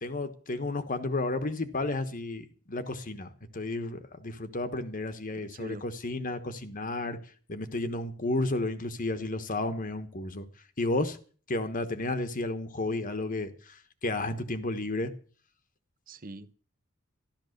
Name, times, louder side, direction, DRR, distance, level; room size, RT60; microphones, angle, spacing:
voice 1, 0.0-7.2 7.5-10.5 10.8-11.2 11.5-15.1, left 2 dB, 40° left, 1.2 m, -32 dB
voice 2, 5.4-5.8 16.1-16.5, right 2 dB, 40° right, 0.8 m, -43 dB
13.5 x 12.0 x 6.6 m
head